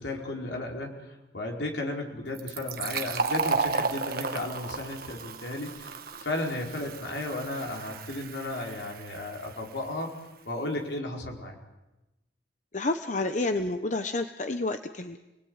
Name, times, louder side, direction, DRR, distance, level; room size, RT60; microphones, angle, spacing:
voice 1, 0.0-10.2 10.4-11.5, left 2 dB, 80° left, 0 dB, 5.0 m, -34 dB
Fill (with liquid), 2.3-9.7, right 4 dB, 55° right, 1.6 m, -33 dB
voice 2, 12.7-15.2, left 2 dB, 45° left, 8 dB, 1.0 m, -29 dB
29.5 x 21.0 x 9.7 m, 1.0 s
head